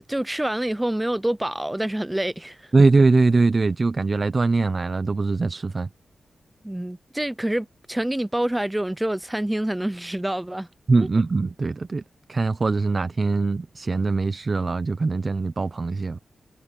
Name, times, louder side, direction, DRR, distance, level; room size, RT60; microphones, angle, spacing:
voice 1, 0.0-2.7 6.6-10.7 11.0-11.1, right 1 dB, 10° right, 0.5 m, -27 dB
voice 2, 2.7-5.9 10.9-12.0 12.3-16.2, right 3 dB, 35° right, 0.9 m, -21 dB
wide cardioid pair, 145°, 0 cm